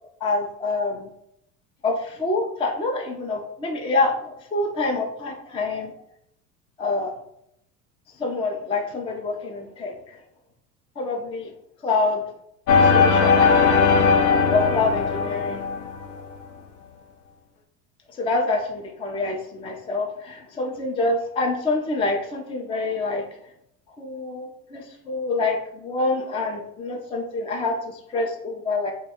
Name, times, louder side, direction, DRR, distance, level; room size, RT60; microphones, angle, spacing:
voice 1, 0.2-1.1 1.8-5.9 6.8-7.1 8.2-10.2 11.0-11.5 11.8-12.2 12.9-13.8 14.5-15.6 18.2-23.2 24.0-28.9, left 3 dB, 10° left, 2 dB, 0.5 m, -26 dB
sound 1, 12.7-16.2, left 5 dB, 55° left, 0.8 m, -18 dB
3.3 x 2.2 x 4.3 m, 0.74 s
hypercardioid pair, 80°, 47 cm